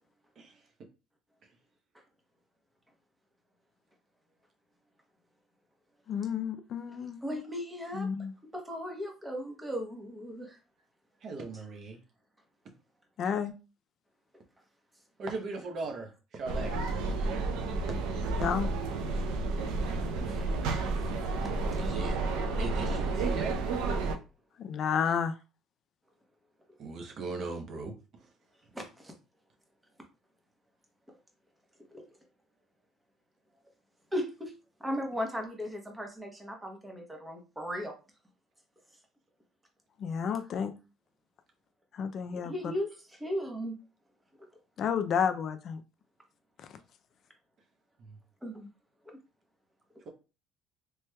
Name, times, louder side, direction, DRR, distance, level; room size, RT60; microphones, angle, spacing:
voice 1, 6.1-7.4 7.9-8.3 13.2-13.5 18.4-18.7 24.6-25.3 40.0-40.7 41.9-42.5 44.8-45.8, left 7 dB, 50° left, 0.3 m, -31 dB
voice 2, 7.2-8.1 8.5-10.6 20.2-20.4 20.8-20.9 21.7-21.9 25.0-25.1 28.7-29.1 31.9-32.0 34.1-34.5 34.8-37.9 42.3-43.7 44.4-44.5 48.4-48.7, equal, 10° right, 0.9 m, -37 dB
voice 3, 11.2-12.0 15.2-16.8 21.8-22.2 22.6-23.6 26.8-28.3 48.0-48.2, right 3 dB, 50° right, 0.7 m, -39 dB
sound 1, 16.5-24.2, right 3 dB, 90° right, 0.4 m, -31 dB
3.1 x 3.1 x 2.2 m
cardioid pair, 110°, 0 cm